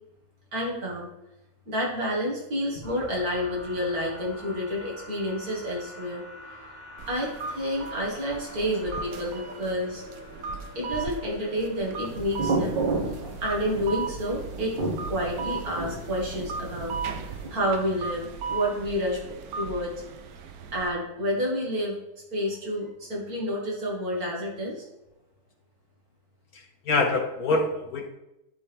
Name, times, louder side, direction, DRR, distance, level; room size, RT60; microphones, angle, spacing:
voice 1, 0.5-1.1 1.7-6.2 7.1-10.0 10.7-12.8 13.4-14.8 15.1-16.9 17.3-19.2 19.6-19.9 20.7-22.0 22.3-24.9, equal, 45° right, -4 dB, 2.5 m, -29 dB
sound 1, 2.7-14.5, left 1 dB, 30° left, 1.9 m, -46 dB
sound 2, 7.0-20.9, right 5 dB, 80° right, 0.8 m, -38 dB
sound 3, 12.0-17.5, right 3 dB, 60° right, 1.9 m, -32 dB
voice 2, 26.5-28.1, left 3 dB, 65° left, 3 dB, 0.9 m, -26 dB
11.5 x 4.2 x 3.5 m, 0.89 s
omnidirectional pair, 2.3 m